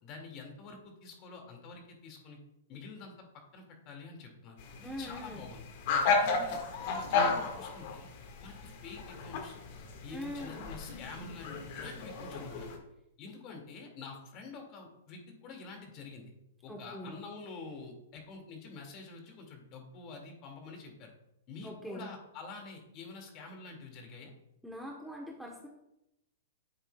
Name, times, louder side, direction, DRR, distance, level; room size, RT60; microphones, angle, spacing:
voice 1, 0.0-2.4 2.7-5.6 6.2-6.6 6.9-8.1 8.4-9.6 10.0-12.7 13.2-16.3 16.6-21.1 21.5-24.3, left 4 dB, 35° left, 3 dB, 2.2 m, -47 dB
sound 1, 4.6-12.8, left 4 dB, 50° left, 1.7 m, -34 dB
voice 2, 4.8-5.4 10.1-10.7 16.7-17.1 21.6-22.1 24.6-25.7, equal, ahead, -1 dB, 1.1 m, -42 dB
11.0 x 7.9 x 2.3 m, 0.86 s
hypercardioid pair, 135°, 0 cm